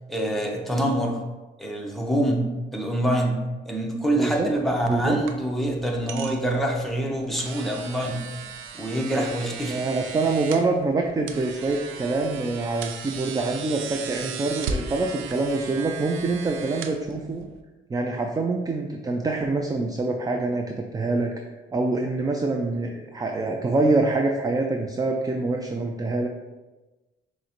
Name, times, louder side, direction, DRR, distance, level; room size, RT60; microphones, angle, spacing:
voice 1, 0.1-1.2 1.6-8.2 8.8-9.8, right 1 dB, ahead, 0 dB, 0.7 m, -25 dB
voice 2, 4.2-4.5 4.8-5.2 9.1-9.2 9.7-17.5 17.9-21.3 21.7-26.3, right 3 dB, 20° right, 2 dB, 0.3 m, -25 dB
sound 1, 4.4-17.6, right 5 dB, 85° right, 0.4 m, -37 dB
6.1 x 2.1 x 2.9 m, 1.1 s
cardioid pair, 90°, 20 cm